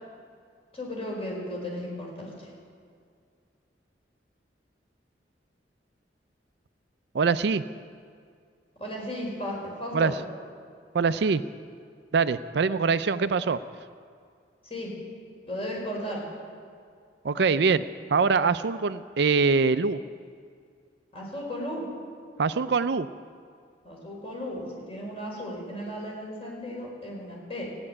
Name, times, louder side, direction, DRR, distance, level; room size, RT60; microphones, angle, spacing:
voice 1, 0.7-2.5 8.8-10.1 14.6-14.9 15.5-16.2 21.1-21.9 23.8-27.7, equal, 35° left, -2 dB, 5.1 m, -35 dB
voice 2, 7.1-7.6 9.9-10.1 10.9-11.4 12.1-13.6 17.2-17.8 18.1-20.0 22.4-23.1, right 5 dB, 70° right, 13 dB, 0.5 m, -23 dB
16.0 x 8.9 x 9.8 m, 2.2 s
head